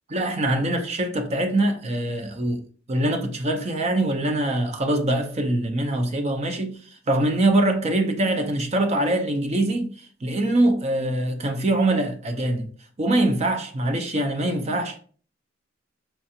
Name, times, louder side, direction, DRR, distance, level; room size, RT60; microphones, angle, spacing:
voice 1, 0.1-2.6 2.9-12.7 13.0-15.0, right 1 dB, 35° right, 0.5 m, -23 dB
4.5 x 2.4 x 2.7 m
head